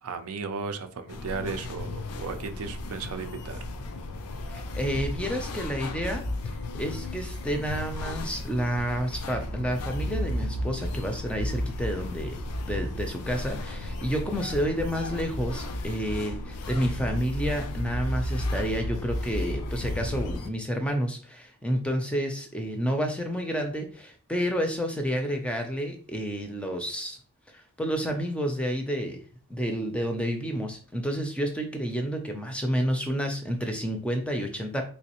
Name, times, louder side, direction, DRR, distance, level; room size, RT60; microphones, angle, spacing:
voice 1, 0.0-3.7, right 4 dB, 75° right, 8 dB, 0.5 m, -35 dB
sound 1, 1.1-20.5, left 1 dB, 90° left, 0.5 m, -33 dB
voice 2, 4.5-6.2 6.8-12.3 12.6-27.2 27.5-29.2 29.5-34.8, equal, 5° left, 4 dB, 0.4 m, -30 dB
3.3 x 3.1 x 2.9 m, 0.42 s
head